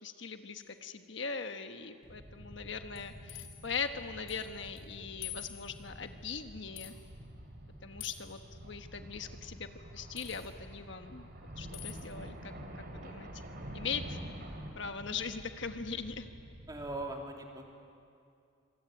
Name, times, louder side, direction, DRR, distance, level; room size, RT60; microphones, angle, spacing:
voice 1, 0.0-7.0 7.8-11.3 11.6-13.3 13.7-14.2 14.7-16.3, left 5 dB, 65° left, 7 dB, 1.3 m, -40 dB
sound 1, 2.0-17.1, equal, 75° right, 7.8 m, -51 dB
sound 2, 2.9-3.7 4.3-4.5 4.8-4.9 5.2-5.9 6.8-6.9 8.0-8.3 10.2-10.5 11.7-12.0, left 13 dB, 90° left, 3.6 m, -46 dB
Thunder, 6.7-7.1 7.4-7.5 8.5-14.7, right 1 dB, 50° right, 3.0 m, -47 dB
voice 2, 16.7-17.7, right 2 dB, 20° right, 1 dB, 3.1 m, -40 dB
26.5 x 23.5 x 9.2 m, 2.4 s
head